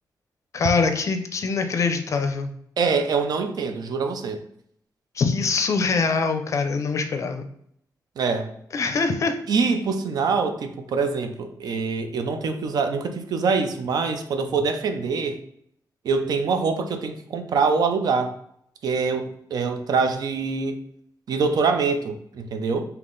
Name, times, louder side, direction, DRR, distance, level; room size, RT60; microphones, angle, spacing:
voice 1, 0.5-2.5 5.2-7.4 8.7-9.4, left 4 dB, 45° left, 7 dB, 0.4 m, -23 dB
voice 2, 2.8-4.4 8.2-8.5 9.5-15.4 16.0-18.3 18.8-20.8 21.3-22.8, right 4 dB, 70° right, 7 dB, 0.5 m, -24 dB
3.7 x 2.8 x 3.8 m, 0.69 s
wide cardioid pair, 170°, 7 cm